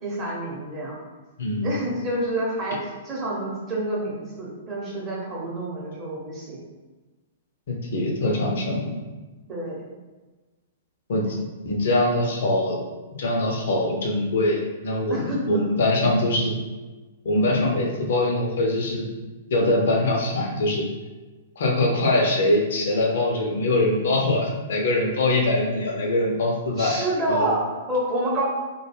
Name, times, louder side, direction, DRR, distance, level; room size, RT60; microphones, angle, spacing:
voice 1, 0.0-1.0 1.6-6.6 9.5-9.9 11.2-11.3 15.1-15.6 26.8-28.4, right 1 dB, 25° right, -5 dB, 0.8 m, -28 dB
voice 2, 1.4-1.7 7.7-8.9 11.1-11.2 11.7-12.8 13.2-16.5 17.2-19.1 19.5-20.8 21.6-27.5, left 2 dB, 60° left, -1 dB, 0.6 m, -23 dB
2.2 x 2.1 x 3.2 m, 1.2 s
figure-of-eight pair, 110°, 0 cm